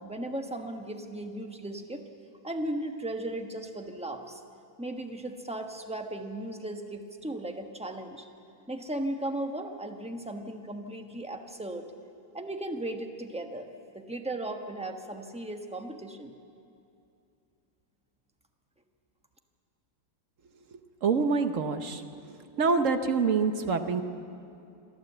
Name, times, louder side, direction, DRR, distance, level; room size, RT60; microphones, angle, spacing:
voice 1, 0.0-2.0 2.4-4.4 4.8-8.2 8.7-11.8 12.3-13.7 13.9-16.4, right 1 dB, 5° right, 4 dB, 0.8 m, -36 dB
voice 2, 21.0-22.0 22.6-24.0, right 5 dB, 50° right, 8 dB, 1.1 m, -26 dB
25.5 x 13.0 x 8.0 m, 2.6 s
omnidirectional pair, 2.1 m